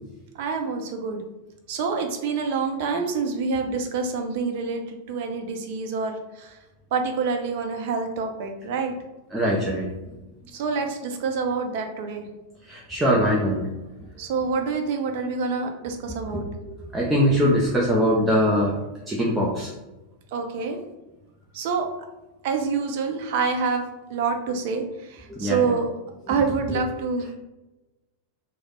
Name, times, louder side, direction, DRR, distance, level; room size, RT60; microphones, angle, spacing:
voice 1, 0.3-1.2 1.7-6.6 6.9-8.9 10.5-12.3 14.2-16.4 20.3-20.8 21.5-21.9 22.4-25.9 26.3-27.3, right 4 dB, 50° right, 4 dB, 0.5 m, -27 dB
voice 2, 9.3-9.9 12.7-13.6 16.3-16.4 16.9-18.7 19.1-19.7 25.3-25.7 26.7-26.8, equal, 10° right, -5 dB, 0.5 m, -22 dB
3.2 x 2.0 x 3.7 m, 1.1 s
figure-of-eight pair, 90°, 0 cm